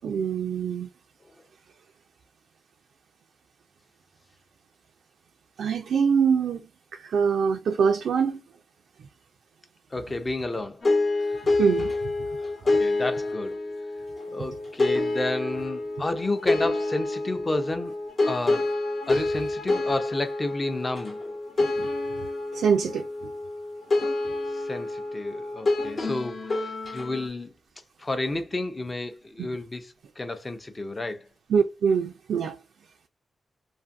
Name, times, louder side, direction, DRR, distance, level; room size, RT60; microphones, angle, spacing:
voice 1, 0.0-0.9 5.6-6.6 6.9-8.4 11.6-11.9 21.6-21.9 22.5-23.1 31.5-32.6, right 6 dB, 85° right, 0.3 m, -24 dB
voice 2, 9.9-10.8 11.3-11.4 12.6-13.6 14.3-17.9 18.2-18.7 19.1-21.2 24.5-27.5 28.0-31.3, left 2 dB, 30° left, 0.5 m, -31 dB
sound 1, 10.8-27.3, left 2 dB, 50° left, 0.9 m, -27 dB
2.5 x 2.5 x 2.5 m
cardioid pair, 80°, 0 cm